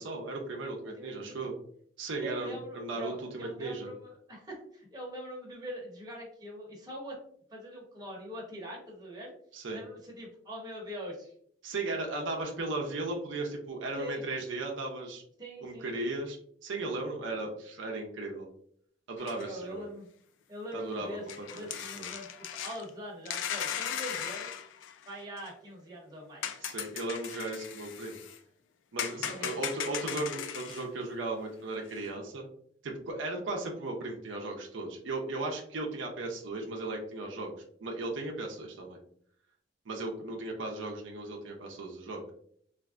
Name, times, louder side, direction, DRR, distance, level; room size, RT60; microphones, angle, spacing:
voice 1, 0.0-1.5 2.0-3.9 9.5-9.8 11.6-15.2 15.6-16.4 16.6-18.5 19.1-19.8 20.7-22.1 26.6-28.2 28.9-32.5 32.8-37.5 37.8-39.0 39.9-42.2, right 2 dB, 75° right, 1 dB, 0.6 m, -36 dB
voice 2, 0.8-1.5 2.2-7.2 7.5-9.3 9.7-11.3 13.9-14.3 15.4-16.0 19.3-20.1 20.5-24.5 25.1-26.6 29.3-29.6, equal, 20° right, -3 dB, 0.9 m, -43 dB
sound 1, 19.2-19.5 20.7-20.8 21.3-22.9 23.3-25.5 26.4-28.4 29.0-30.9 31.9-32.0, left 9 dB, 85° left, 0.3 m, -37 dB
3.3 x 2.5 x 2.4 m, 0.63 s
head